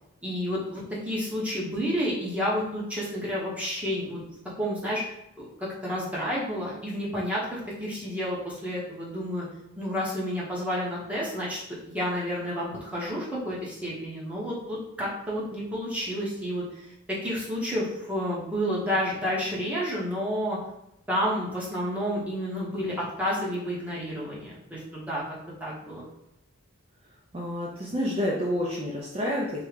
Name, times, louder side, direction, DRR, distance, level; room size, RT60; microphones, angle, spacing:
voice 1, 0.2-4.2 4.6-5.0 5.4-9.4 9.8-11.6 11.9-16.7 17.1-20.6 21.1-25.2 25.6-26.1, equal, 5° right, -7 dB, 0.8 m, -30 dB
voice 2, 27.3-29.6, left 1 dB, 30° right, -4 dB, 0.4 m, -29 dB
3.5 x 2.1 x 3.2 m, 0.84 s
head